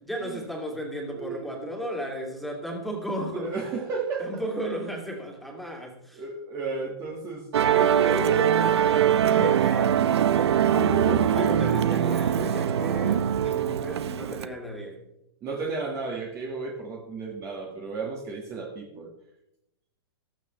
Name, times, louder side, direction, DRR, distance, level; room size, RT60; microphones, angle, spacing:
voice 1, 0.0-3.5 4.2-6.2 8.0-8.7 9.2-10.1 10.7-15.0, equal, ahead, -1 dB, 2.4 m, -34 dB
voice 2, 1.1-1.7 3.3-4.3 6.1-8.4 9.1-9.5 15.4-19.1, right 4 dB, 20° right, 0 dB, 1.6 m, -33 dB
Musical instrument, 7.5-14.5, right 9 dB, 80° right, 0.9 m, -22 dB
15.0 x 13.5 x 3.1 m, 0.82 s
hypercardioid pair, 160°, 14 cm